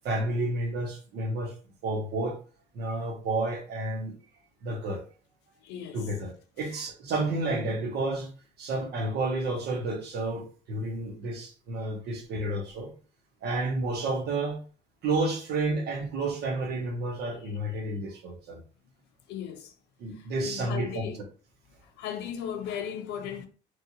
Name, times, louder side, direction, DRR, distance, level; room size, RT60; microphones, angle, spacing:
voice 1, 0.0-1.5 1.8-2.4 2.7-4.1 4.6-5.0 5.9-8.3 8.6-12.9 13.4-14.6 15.0-18.6 20.0-21.2, right 2 dB, 75° right, 1.0 m, -31 dB
voice 2, 5.6-6.0 19.3-19.7 20.2-21.2 22.0-23.5, left 8 dB, 85° left, 0.6 m, -36 dB
3.1 x 2.5 x 2.7 m
cardioid pair, 110°, 17 cm